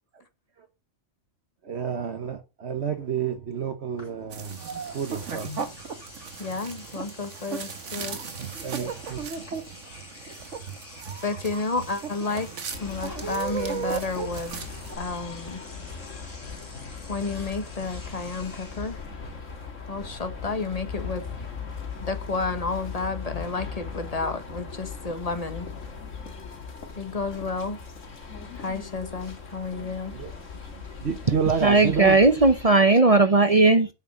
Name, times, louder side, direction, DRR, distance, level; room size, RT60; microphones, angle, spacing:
voice 1, 1.6-4.6 4.9-5.5 8.0-9.2 30.1-30.4 30.7-32.2, right 7 dB, 60° right, 1.4 m, -29 dB
Engine / Domestic sounds home sounds, 4.0-4.1 4.4-19.1, left 2 dB, 65° left, 3.3 m, -48 dB
sound 1, 4.3-15.0, right 6 dB, 75° right, 1.6 m, -36 dB
voice 2, 6.4-8.2 11.2-12.5 12.8-14.6 15.0-15.6 17.1-19.0 19.9-21.3 22.0-25.7 27.0-27.8 28.5-30.1, left 3 dB, 30° left, 1.5 m, -31 dB
sound 2, 12.7-32.7, left 5 dB, 85° left, 2.2 m, -39 dB
voice 3, 31.6-33.9, right 3 dB, 35° right, 0.8 m, -17 dB
7.9 x 6.4 x 7.2 m
omnidirectional pair, 1.3 m